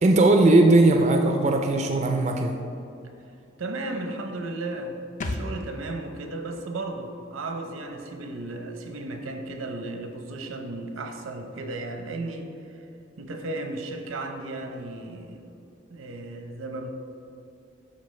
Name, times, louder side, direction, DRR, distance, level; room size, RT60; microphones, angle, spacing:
voice 1, 0.0-2.5, right 2 dB, 35° right, 4 dB, 0.4 m, -18 dB
voice 2, 3.6-12.9 13.2-15.5 15.9-16.9, right 2 dB, 85° right, 5 dB, 0.8 m, -35 dB
sound 1, 5.2-8.7 9.0-9.1, left 1 dB, 35° left, 0.4 m, -38 dB
11.5 x 4.2 x 3.2 m, 2.7 s
head